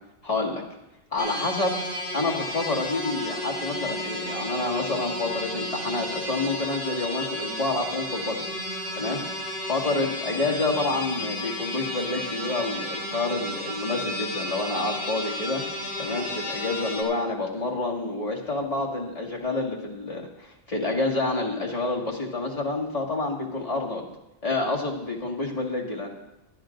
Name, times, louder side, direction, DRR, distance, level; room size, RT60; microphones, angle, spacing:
voice 1, 0.2-0.6 1.1-1.8 2.1-8.5 9.0-9.2 9.6-15.6 16.0-24.0 24.4-26.1, left 2 dB, 30° left, -3 dB, 2.0 m, -28 dB
sound 1, 1.2-17.0, left 1 dB, 10° left, 3.2 m, -32 dB
20.5 x 12.5 x 2.6 m, 0.92 s
omnidirectional pair, 1.2 m